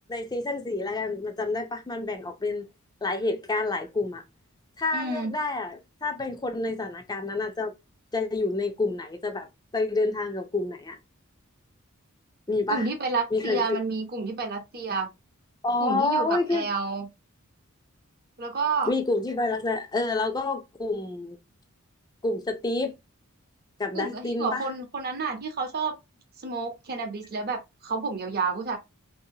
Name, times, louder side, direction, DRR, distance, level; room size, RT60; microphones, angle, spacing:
voice 1, 0.1-2.7 3.0-4.2 4.8-7.7 8.1-9.5 9.7-11.0 12.5-12.9 13.3-13.8 15.6-16.7 18.8-21.4 22.2-22.9 23.8-24.7, left 3 dB, 20° left, 0.5 m, -28 dB
voice 2, 4.9-5.3 12.7-15.1 15.8-17.1 18.4-18.9 23.9-25.9 26.4-28.8, right 4 dB, 45° right, 0.7 m, -30 dB
2.7 x 2.2 x 2.7 m
head